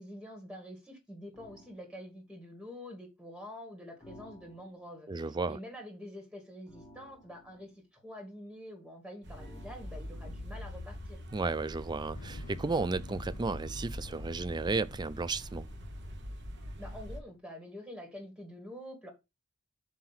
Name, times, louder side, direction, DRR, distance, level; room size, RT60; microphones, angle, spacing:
voice 1, 0.0-11.2 16.8-19.1, left 1 dB, 5° right, 1.9 m, -47 dB
sound 1, 1.3-1.8 4.0-4.9 6.7-7.8 9.3-10.7, equal, 20° left, 1.2 m, -56 dB
voice 2, 5.1-5.6 11.3-15.7, right 3 dB, 20° right, 0.4 m, -33 dB
sound 2, 9.2-17.2, equal, 55° right, 1.2 m, -43 dB
Motorcycle, 12.1-17.4, left 4 dB, 85° left, 0.6 m, -52 dB
7.7 x 3.0 x 5.9 m
head